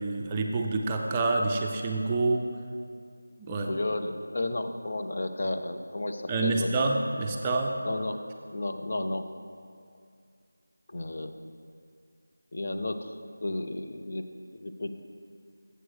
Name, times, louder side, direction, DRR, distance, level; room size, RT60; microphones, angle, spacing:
voice 1, 0.0-2.5 3.4-3.8 6.3-7.8, right 3 dB, 20° right, 1 dB, 0.4 m, -27 dB
voice 2, 3.7-6.7 7.8-8.2 8.5-9.3 10.9-11.4 12.5-14.2 14.6-14.9, left 2 dB, 50° left, 6 dB, 0.6 m, -33 dB
12.0 x 7.9 x 3.3 m, 2.3 s
figure-of-eight pair, 170°, 0 cm